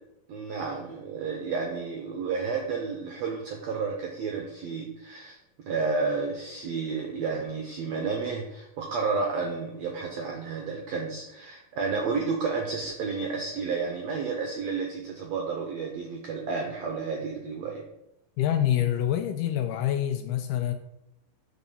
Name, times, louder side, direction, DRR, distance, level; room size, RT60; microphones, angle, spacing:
voice 1, 0.3-5.4 5.6-17.8, right 4 dB, 85° right, 1.5 m, -31 dB
voice 2, 18.4-20.7, left 11 dB, 80° left, 2.0 m, -26 dB
7.3 x 4.3 x 5.4 m
omnidirectional pair, 4.1 m